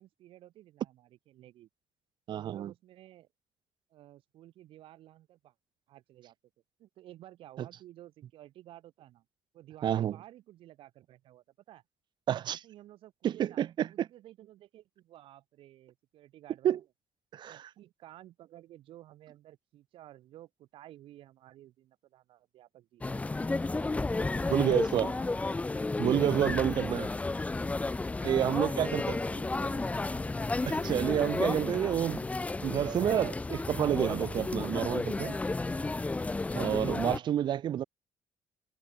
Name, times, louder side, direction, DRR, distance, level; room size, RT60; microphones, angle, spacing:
voice 1, 0.0-1.7 2.3-3.3 3.9-5.5 5.9-6.3 6.8-9.2 9.5-11.8 12.5-16.8 17.5-23.2 23.8-26.1 26.4-27.2 28.3-30.0 37.2-37.6, right 14 dB, 75° right, 4.7 m, -54 dB
voice 2, 2.3-2.7 9.8-10.2 12.3-12.6 13.2-14.1 16.6-16.8 17.3-17.7 24.5-25.1 26.0-27.1 28.2-29.2 30.7-32.3 32.6-35.4 36.5-37.8, right 10 dB, 55° right, 0.5 m, -29 dB
sound 1, 23.0-37.2, left 3 dB, 15° left, 0.5 m, -32 dB
cardioid pair, 90°, 9 cm